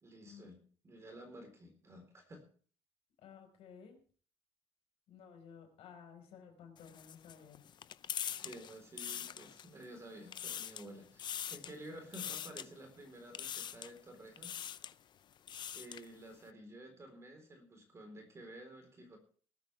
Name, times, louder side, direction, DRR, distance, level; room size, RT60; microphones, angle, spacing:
voice 1, 0.0-2.4 8.3-14.6 15.7-19.2, right 1 dB, 25° right, 4 dB, 4.1 m, -52 dB
voice 2, 3.2-4.0 5.1-7.6, left 7 dB, 75° left, 4 dB, 5.1 m, -55 dB
sound 1, 6.8-9.8 10.2-10.9 11.2-11.8 12.1-12.7 13.3-14.0 14.4-14.9 15.3-16.1, left 9 dB, 45° left, 0.6 m, -43 dB
19.0 x 13.0 x 3.5 m, 0.44 s
cardioid pair, 145°, 10 cm